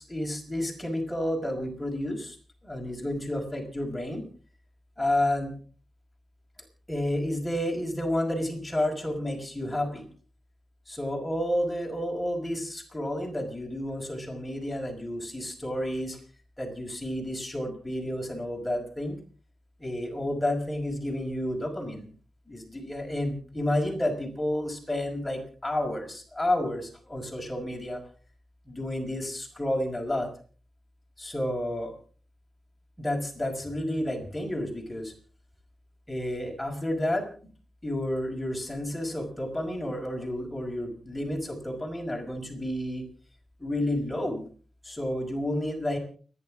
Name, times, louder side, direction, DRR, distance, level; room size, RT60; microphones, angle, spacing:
voice 1, 0.0-2.4 2.6-4.3 5.0-5.6 6.9-10.1 10.9-16.2 16.6-19.2 19.8-22.1 22.5-28.0 28.7-30.3 31.2-31.9 33.0-35.1 36.1-37.3 37.8-43.1 43.6-44.5 44.8-46.0, left 1 dB, 10° left, 0 dB, 5.5 m, -30 dB
29.5 x 11.0 x 3.8 m, 0.42 s
wide cardioid pair, 120°, 0 cm